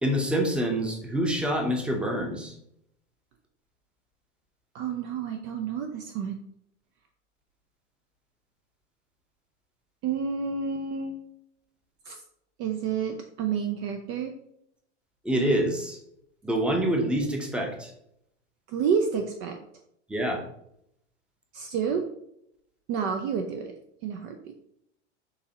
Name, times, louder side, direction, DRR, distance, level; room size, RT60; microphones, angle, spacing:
voice 1, 0.0-2.5 15.2-16.0 16.4-17.9 20.1-20.4, right 1 dB, 5° right, 2 dB, 0.7 m, -26 dB
voice 2, 4.7-6.4 10.0-11.2 12.0-12.2 12.6-14.3 18.7-19.6 21.5-22.0 22.9-23.7 24.0-24.5, right 6 dB, 35° right, 5 dB, 0.5 m, -29 dB
6.5 x 2.8 x 2.8 m, 0.74 s
hypercardioid pair, 105°, 36 cm